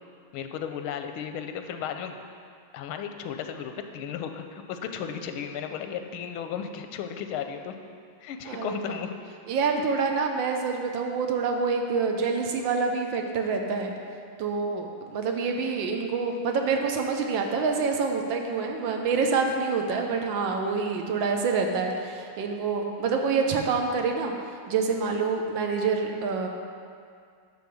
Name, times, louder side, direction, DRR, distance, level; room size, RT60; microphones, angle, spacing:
voice 1, 0.3-2.1 2.7-7.7 8.2-9.1, left 8 dB, 90° left, 7 dB, 1.5 m, -34 dB
voice 2, 8.5-8.8 9.5-13.9 14.4-24.3 24.7-26.5, right 4 dB, 70° right, 3 dB, 1.4 m, -27 dB
9.8 x 3.9 x 6.8 m, 2.2 s
omnidirectional pair, 2.3 m